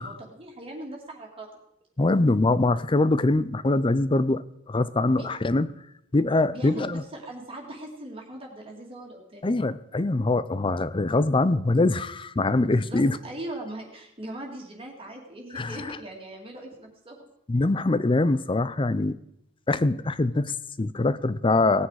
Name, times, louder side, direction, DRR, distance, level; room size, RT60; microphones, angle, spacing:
voice 1, 0.0-1.5 5.1-5.3 6.5-9.5 12.6-17.2, right 1 dB, 30° right, 0 dB, 2.3 m, -40 dB
voice 2, 2.0-5.7 6.1-7.0 9.4-13.2 15.5-16.0 17.5-19.2 19.7-21.9, left 2 dB, 25° left, 16 dB, 0.5 m, -23 dB
18.0 x 9.7 x 4.8 m, 0.78 s
head